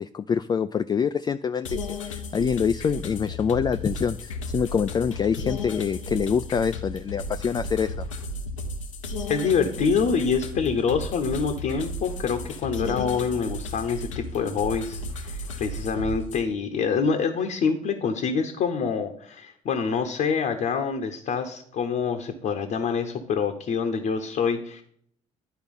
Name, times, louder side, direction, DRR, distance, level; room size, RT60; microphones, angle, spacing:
voice 1, 0.0-1.8 2.1-8.0, left 6 dB, 25° left, 10 dB, 0.3 m, -25 dB
sound 1, 1.6-16.4, left 2 dB, 85° left, 0.7 m, -34 dB
voice 2, 9.3-24.8, left 5 dB, 55° left, 4 dB, 0.9 m, -26 dB
10.5 x 4.4 x 5.4 m, 0.63 s
hypercardioid pair, 50°, 16 cm